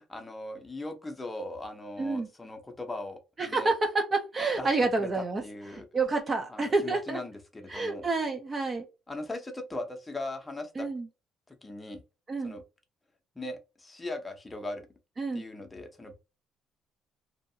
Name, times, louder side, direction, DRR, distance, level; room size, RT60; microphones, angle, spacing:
voice 1, 0.0-3.2 3.5-3.7 4.6-5.9 6.5-8.1 9.1-10.9 11.5-12.0 12.4-12.6 13.4-14.9 15.3-16.1, left 2 dB, 15° left, 0.7 m, -39 dB
voice 2, 2.0-2.3 3.4-5.4 5.7-7.2 7.7-8.9 10.8-11.0 12.3-12.5 15.2-15.4, right 3 dB, 25° right, 0.5 m, -29 dB
2.8 x 2.5 x 2.6 m
cardioid pair, 125°, 0 cm